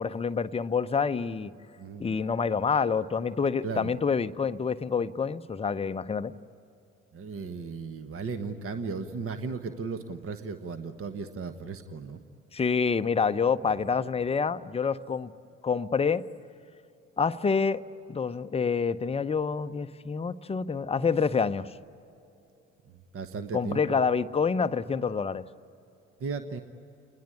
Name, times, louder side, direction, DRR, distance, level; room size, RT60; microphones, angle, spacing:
voice 1, 0.0-1.5 2.0-6.3 12.5-15.3 15.6-16.3 17.2-17.8 18.1-21.7 23.5-25.4, left 5 dB, 15° left, 10 dB, 0.7 m, -27 dB
voice 2, 3.6-4.0 7.1-12.2 23.1-24.0 26.2-26.6, right 4 dB, 35° right, 9 dB, 1.3 m, -36 dB
29.5 x 20.5 x 9.8 m, 2.9 s
figure-of-eight pair, 55°, 37 cm